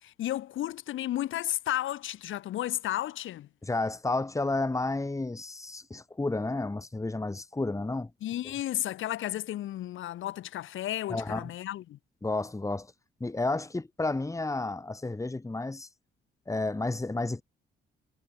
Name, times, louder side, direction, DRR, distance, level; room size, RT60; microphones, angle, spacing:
voice 1, 0.0-3.5 8.2-12.0, left 13 dB, 80° left, 4.0 m, -33 dB
voice 2, 3.6-8.1 11.1-11.5 12.2-12.9 13.2-15.9 16.5-17.4, left 2 dB, 15° left, 3.2 m, -31 dB
cardioid pair, 90°, 20 cm